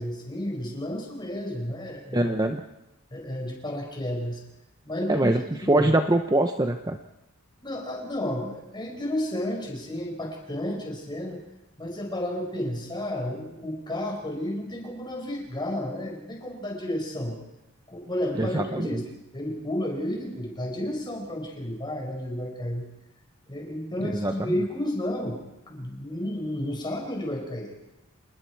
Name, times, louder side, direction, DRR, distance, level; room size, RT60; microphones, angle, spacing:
voice 1, 0.0-2.3 3.1-4.4 4.8-5.9 7.6-11.4 11.8-17.4 17.9-19.1 19.3-22.8 23.5-25.4 25.7-27.7, left 1 dB, 20° left, 1 dB, 4.9 m, -32 dB
voice 2, 2.1-2.6 5.1-7.0 18.4-19.0 24.0-24.3, right 1 dB, 20° right, 6 dB, 0.8 m, -23 dB
27.5 x 20.5 x 4.6 m, 0.93 s
head